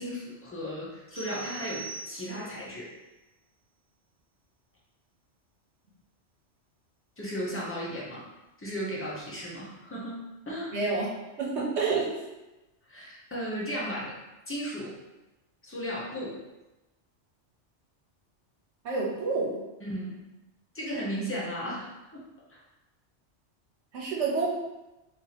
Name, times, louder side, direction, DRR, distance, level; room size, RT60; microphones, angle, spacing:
voice 1, 0.0-2.9 7.2-8.3 8.6-10.8 12.9-14.1 14.5-15.0 15.6-16.4 19.8-20.2 20.7-22.2 22.5-22.6, equal, 15° left, -6 dB, 0.7 m, -35 dB
sound 1, 1.1-2.6, right 4 dB, 30° left, 1.1 m, -42 dB
voice 2, 10.7-11.1 11.4-12.1 18.8-19.6 23.9-24.5, right 4 dB, 70° right, -3 dB, 1.1 m, -28 dB
2.8 x 2.7 x 4.0 m, 1.0 s
omnidirectional pair, 1.2 m